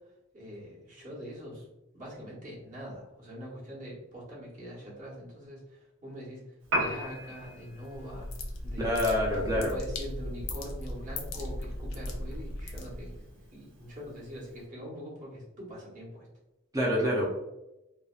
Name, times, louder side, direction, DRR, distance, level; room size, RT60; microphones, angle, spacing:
voice 1, 0.3-1.7 1.9-6.4 6.7-8.3 8.6-16.3, equal, 40° right, -6 dB, 0.9 m, -43 dB
Piano, 6.6-14.7, equal, 85° right, 0.7 m, -40 dB
sound 1, 7.9-13.3, left 1 dB, 85° left, 0.5 m, -37 dB
voice 2, 8.8-9.7 16.7-17.2, left 1 dB, 15° right, -4 dB, 0.4 m, -26 dB
2.5 x 2.1 x 2.3 m, 0.93 s
head